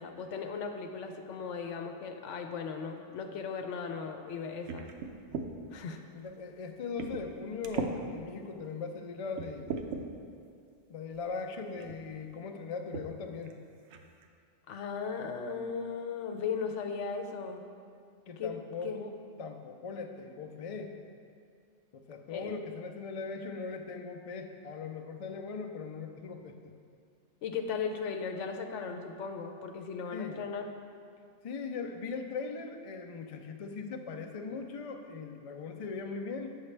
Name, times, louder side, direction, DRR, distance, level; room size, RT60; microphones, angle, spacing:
voice 1, 0.0-4.9 5.7-6.0 14.7-17.6 18.4-18.5 18.8-19.0 22.3-22.5 27.4-30.6, left 5 dB, 80° left, 5 dB, 1.0 m, -37 dB
sound 1, 4.7-5.5 6.2-6.4 7.0-7.3 7.6-8.0 8.6-8.7 9.3-10.0 11.1-11.3 11.8-12.0 12.9-13.1 13.5-13.6 13.9-14.3, right 5 dB, 75° right, 0.9 m, -37 dB
voice 2, 6.1-9.7 10.9-13.6 18.3-19.1 19.4-20.9 21.9-26.7 30.1-30.4 31.4-36.5, left 4 dB, 60° left, 4 dB, 0.3 m, -39 dB
8.2 x 6.4 x 3.3 m, 2.3 s
omnidirectional pair, 1.2 m